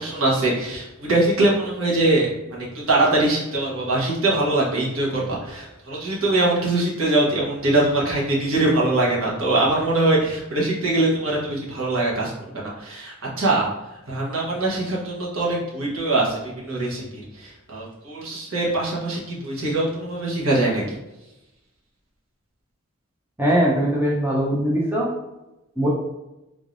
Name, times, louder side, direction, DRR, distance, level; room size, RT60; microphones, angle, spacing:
voice 1, 0.0-13.7 14.1-21.0, right 2 dB, 75° right, -4 dB, 1.2 m, -22 dB
voice 2, 23.4-25.1 25.8-25.9, right 1 dB, 10° right, -5 dB, 0.6 m, -21 dB
3.7 x 3.2 x 2.5 m, 0.97 s
head